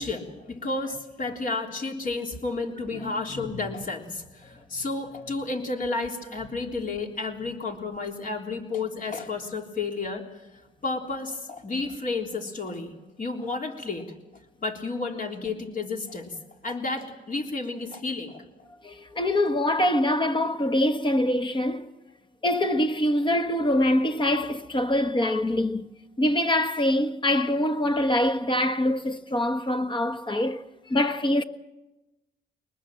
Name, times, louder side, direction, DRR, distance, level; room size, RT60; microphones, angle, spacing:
voice 1, 0.0-10.2 10.8-12.9 13.2-14.1 14.6-16.3 16.6-18.4, left 3 dB, 45° left, 3.5 m, -31 dB
voice 2, 2.9-3.5 18.8-21.9 22.4-25.9 26.2-31.4, left 1 dB, 25° left, 1.4 m, -24 dB
22.5 x 20.0 x 7.5 m
cardioid pair, 90°, 20 cm